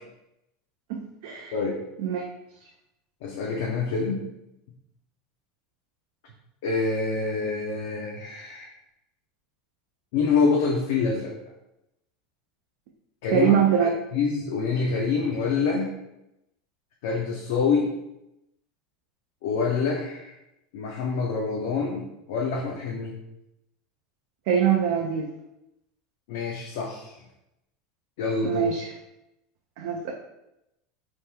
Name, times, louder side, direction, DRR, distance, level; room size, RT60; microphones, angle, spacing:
voice 1, 0.9-1.5 2.0-2.2 13.3-13.9 24.5-25.3 28.4-28.8 29.8-30.1, right 8 dB, 70° right, 1 dB, 0.3 m, -23 dB
voice 2, 3.2-4.2 6.6-8.7 10.1-11.3 13.2-15.9 17.0-17.9 19.4-20.3 20.7-23.1 26.3-27.1 28.2-28.7, left 4 dB, 75° left, -2 dB, 0.5 m, -26 dB
2.9 x 2.2 x 3.3 m, 0.88 s
supercardioid pair, 140°, 0 cm